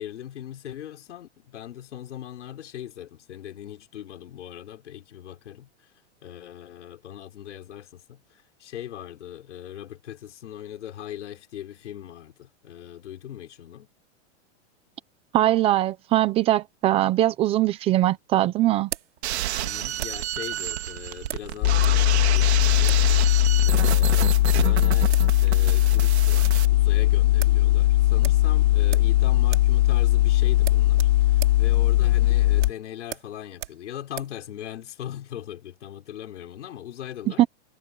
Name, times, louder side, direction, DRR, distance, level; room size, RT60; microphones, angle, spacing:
voice 1, 0.0-5.9 6.2-13.9 19.6-37.4, left 11 dB, 90° left, 4.9 m, -40 dB
voice 2, 15.3-18.9 37.4-37.5, right 14 dB, 15° right, 0.7 m, -21 dB
sound 1, 17.4-20.4 21.3-22.0 22.3-22.4 22.8-23.1 23.8-24.3 24.8-24.9 25.1-25.3 25.6-25.7 26.1-26.7 27.0-27.1 27.4-27.6 28.2-29.2 29.4-29.8 30.0-30.2 30.6-34.4, right 11 dB, 85° right, 6.6 m, -39 dB
sound 2, 19.2-26.7, right 13 dB, 65° right, 2.3 m, -30 dB
sound 3, 21.6-32.7, left 15 dB, 35° left, 0.6 m, -19 dB
supercardioid pair, 170°, 34 cm